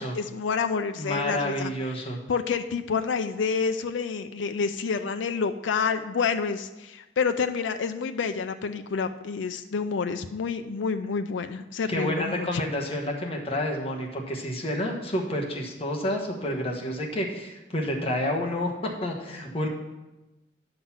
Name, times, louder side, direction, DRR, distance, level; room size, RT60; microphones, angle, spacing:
voice 1, 0.0-1.7 2.3-12.6, left 5 dB, 90° left, 9 dB, 0.4 m, -28 dB
voice 2, 1.0-2.2 11.9-19.7, left 1 dB, 30° left, 0 dB, 1.2 m, -29 dB
10.5 x 3.9 x 7.2 m, 1.0 s
head